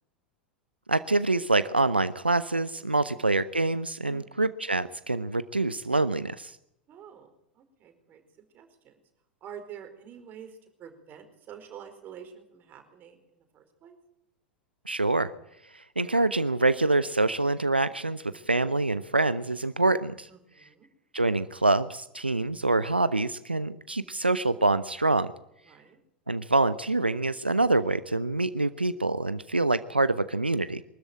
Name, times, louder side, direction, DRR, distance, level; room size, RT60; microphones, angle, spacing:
voice 1, 0.9-6.6 14.9-15.3 15.7-20.3 21.1-25.3 26.3-30.8, right 2 dB, 90° right, 14 dB, 0.7 m, -26 dB
voice 2, 2.8-3.2 4.0-4.4 6.9-8.2 8.5-9.0 9.4-14.0 20.3-20.9 25.7-26.0, right 8 dB, 35° right, 7 dB, 4.8 m, -48 dB
23.5 x 13.5 x 9.0 m, 0.81 s
figure-of-eight pair, 85°, 5 cm